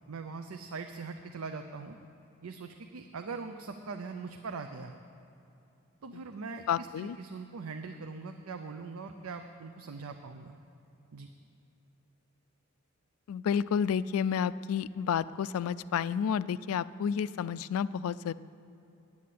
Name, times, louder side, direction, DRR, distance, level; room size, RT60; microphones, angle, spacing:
voice 1, 0.1-2.0 2.4-4.9 6.0-10.6 11.1-11.3, right 4 dB, 85° right, 6 dB, 0.5 m, -41 dB
voice 2, 6.7-7.2 13.3-18.3, left 7 dB, 80° left, 18 dB, 0.3 m, -30 dB
8.6 x 8.4 x 9.3 m, 2.8 s
head